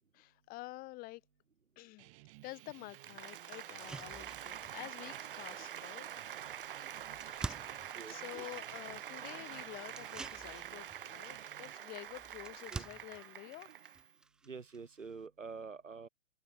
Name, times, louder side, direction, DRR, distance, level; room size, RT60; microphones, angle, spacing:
voice 1, 0.1-1.2 1.8-2.1 2.4-6.1 6.8-13.7, left 20 dB, 20° left, 2.9 m, -49 dB
sound 1, 2.0-11.8, right 27 dB, 25° right, 1.5 m, -58 dB
Applause, 2.5-14.1, right 10 dB, 45° right, 0.6 m, -46 dB
sound 2, 2.6-2.7 3.1-3.2 3.6-15.3, right 4 dB, ahead, 0.5 m, -50 dB
voice 2, 7.9-8.5 12.7-12.8 14.4-16.1, right 5 dB, 70° right, 3.0 m, -47 dB
open air
figure-of-eight pair, 125°, 39 cm